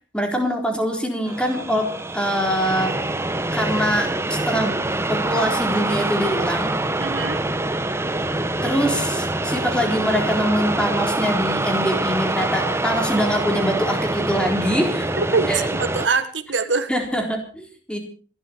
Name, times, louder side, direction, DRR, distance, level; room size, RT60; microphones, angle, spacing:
voice 1, 0.1-2.9 3.5-4.8 5.1-6.8 8.6-15.1 15.5-15.6 16.9-18.0, equal, 5° left, 3 dB, 4.0 m, -23 dB
sound 1, 1.3-16.1, right 2 dB, 15° right, 1.1 m, -25 dB
voice 2, 7.0-7.4 15.2-16.9, right 4 dB, 80° right, 11 dB, 1.5 m, -23 dB
26.5 x 12.0 x 4.5 m, 0.39 s
head